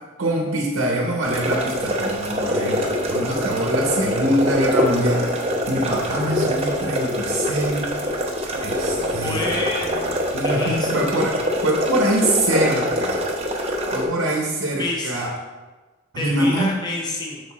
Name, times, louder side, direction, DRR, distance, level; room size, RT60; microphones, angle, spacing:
voice 1, 0.2-5.3 5.7-7.9 8.6-9.5 10.3-13.2 13.9-15.3 16.1-16.7, right 1 dB, 75° right, -1 dB, 0.8 m, -24 dB
sound 1, 1.2-14.0, equal, 30° right, 0.8 m, -24 dB
sound 2, 2.3-10.4, right 1 dB, 80° left, 2.1 m, -37 dB
voice 2, 9.2-9.9 10.4-11.0 14.8-15.4 16.2-17.4, left 2 dB, 20° left, -2 dB, 0.7 m, -28 dB
6.3 x 4.7 x 4.1 m, 1.2 s
head